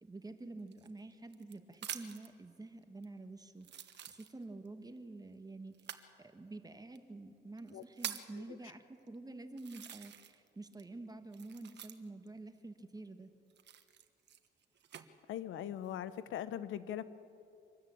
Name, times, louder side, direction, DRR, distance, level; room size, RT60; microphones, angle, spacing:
voice 1, 0.0-5.7 6.2-13.3, right 2 dB, 20° right, 8 dB, 1.4 m, -49 dB
sound 1, 0.7-2.3 3.0-3.1 3.6-4.7 5.7-6.1 7.0-7.1 7.6-8.4 9.1-9.2 9.6-10.5 10.7-12.3 13.5-15.1 15.7-16.2, right 10 dB, 60° right, 1.3 m, -46 dB
voice 2, 15.3-17.0, left 10 dB, 80° left, 14 dB, 1.0 m, -40 dB
25.0 x 13.0 x 8.8 m, 2.4 s
cardioid pair, 90°, 20 cm